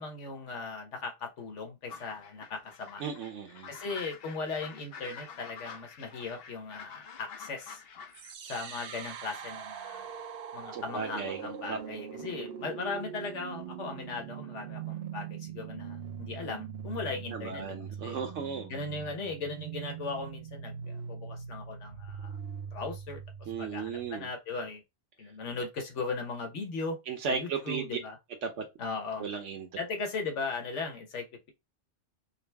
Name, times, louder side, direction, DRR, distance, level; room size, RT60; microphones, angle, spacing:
voice 1, 0.0-3.0 3.7-7.8 8.4-10.1 10.5-17.6 18.0-18.2 18.7-22.3 22.7-23.2 23.6-24.8 25.2-27.0 27.3-28.2 28.8-29.3 29.8-31.5, left 4 dB, 85° left, 1.4 m, -38 dB
sound 1, 1.9-8.3, left 6 dB, 60° left, 0.8 m, -48 dB
voice 2, 3.0-3.7 10.7-11.8 17.3-18.7 23.5-24.3 27.1-28.0 28.4-28.7 29.2-29.7, right 5 dB, 90° right, 1.1 m, -35 dB
sound 2, 8.1-24.1, right 7 dB, 65° right, 0.8 m, -42 dB
5.4 x 2.0 x 3.3 m
omnidirectional pair, 1.2 m